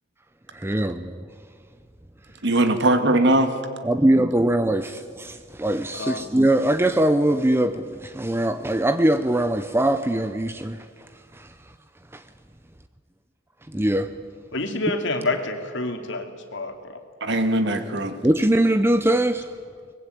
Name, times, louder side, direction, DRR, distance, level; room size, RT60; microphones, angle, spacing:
voice 1, 0.5-1.3 3.8-11.7 12.1-12.2 13.7-14.2 18.2-19.5, right 1 dB, 10° right, 0.6 m, -22 dB
voice 2, 2.4-3.5 17.2-18.2, right 1 dB, 60° right, 2.0 m, -20 dB
voice 3, 14.5-17.0 17.3-17.4, left 2 dB, 65° left, 2.7 m, -28 dB
23.5 x 20.5 x 9.3 m
head